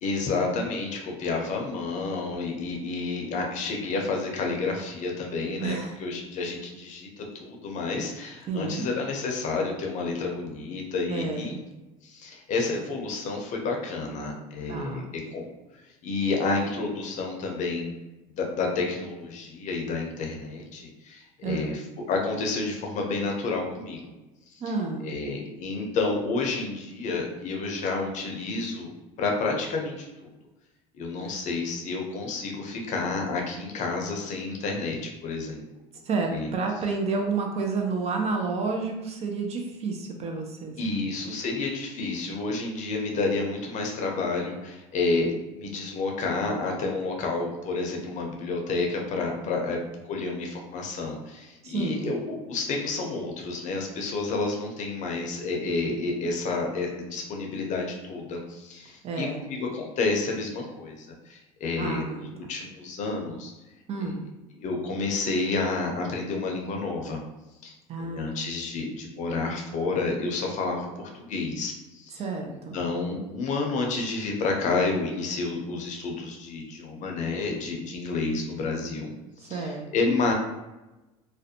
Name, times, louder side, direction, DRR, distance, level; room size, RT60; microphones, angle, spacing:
voice 1, 0.0-11.5 12.0-15.0 15.3-15.4 16.0-17.9 18.4-21.8 22.1-24.0 24.5-24.7 25.0-28.9 29.2-30.3 30.9-35.6 36.3-36.5 40.8-49.8 50.1-63.5 64.0-64.2 64.6-67.2 67.6-79.1 79.4-80.3, left 3 dB, 50° left, 1 dB, 0.6 m, -30 dB
voice 2, 5.6-5.9 8.5-8.9 11.1-11.6 14.7-15.1 21.4-21.8 24.6-25.1 36.1-41.1 51.6-52.1 59.0-59.4 61.8-62.2 63.9-64.2 67.9-68.5 72.2-72.8 79.5-80.2, right 4 dB, 40° right, 2 dB, 0.5 m, -30 dB
2.5 x 2.1 x 2.7 m, 1.0 s
supercardioid pair, 95°, 16 cm